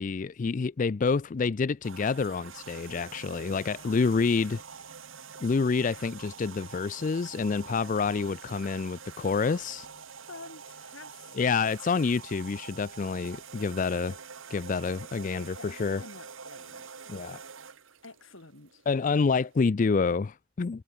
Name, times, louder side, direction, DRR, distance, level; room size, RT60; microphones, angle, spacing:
voice 1, 0.0-4.6 5.4-9.9 11.3-14.2 14.5-16.0 17.1-17.4 18.9-20.8, left 4 dB, 40° left, 0.4 m, -28 dB
sound 1, 1.8-19.6, right 6 dB, 85° right, 1.9 m, -46 dB
voice 2, 3.8-4.2 10.3-11.6 15.6-16.9 18.0-18.8, left 3 dB, 85° left, 4.5 m, -49 dB
head